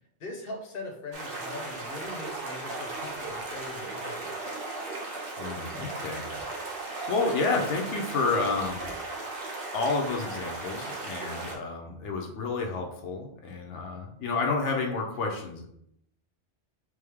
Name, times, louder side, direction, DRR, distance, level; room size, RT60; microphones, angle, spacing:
voice 1, 0.2-4.4, left 2 dB, 55° left, 2 dB, 1.0 m, -41 dB
sound 1, 1.1-11.5, right 2 dB, 55° right, 1.1 m, -36 dB
voice 2, 5.4-6.3 6.6-8.8 9.7-15.7, left 3 dB, 85° left, 2 dB, 1.0 m, -30 dB
3.5 x 3.4 x 3.4 m, 0.73 s
omnidirectional pair, 1.2 m